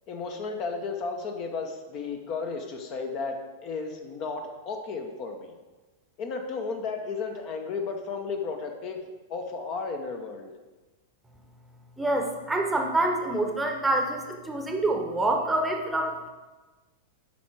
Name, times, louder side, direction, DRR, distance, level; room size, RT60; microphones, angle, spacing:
voice 1, 0.1-5.5 6.2-9.0 9.3-10.5, left 4 dB, 35° left, 4 dB, 0.9 m, -33 dB
voice 2, 12.0-16.3, right 2 dB, 5° right, 3 dB, 1.0 m, -26 dB
8.3 x 5.9 x 4.7 m, 1.2 s
figure-of-eight pair, 95°, 0 cm